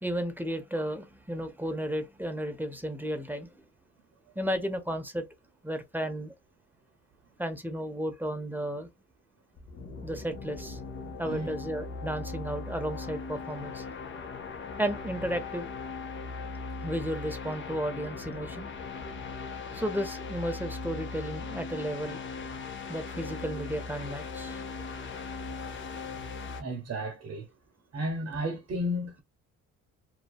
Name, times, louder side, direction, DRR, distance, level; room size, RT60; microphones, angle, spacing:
voice 1, 0.0-3.5 4.4-5.3 5.6-6.3 7.4-8.9 10.0-10.8 11.2-13.8 14.8-15.7 16.8-18.7 19.7-22.2 22.9-24.6, equal, 5° right, 0.5 m, -33 dB
sound 1, 9.6-26.6, left 4 dB, 40° left, 0.6 m, -39 dB
voice 2, 11.0-11.5 26.6-27.5 27.9-29.2, equal, 55° right, 0.8 m, -33 dB
2.6 x 2.1 x 2.3 m
cardioid pair, 90°, 30 cm